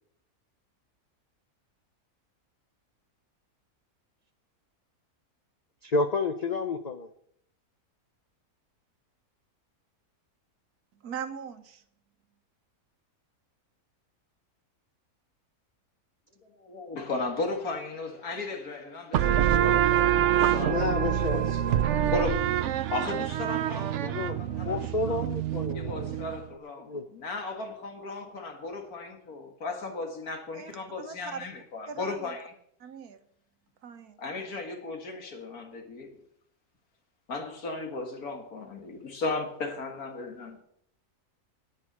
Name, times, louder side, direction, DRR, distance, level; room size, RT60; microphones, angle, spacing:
voice 1, 5.8-7.1 20.6-21.4 24.0-24.4 24.6-26.1 26.8-27.0, left 3 dB, 45° left, 0.5 m, -30 dB
voice 2, 11.0-11.8 30.5-30.7 31.0-31.5 31.9-32.3 32.8-33.2 33.8-34.2, right 6 dB, 85° right, 1.6 m, -40 dB
voice 3, 16.5-20.9 21.3-22.4 22.9-25.2 25.7-32.5 34.2-36.2 37.3-40.6, left 3 dB, 75° left, 2.4 m, -36 dB
sound 1, 19.1-26.4, right 11 dB, 60° right, 0.8 m, -26 dB
10.5 x 8.9 x 7.5 m
omnidirectional pair, 1.6 m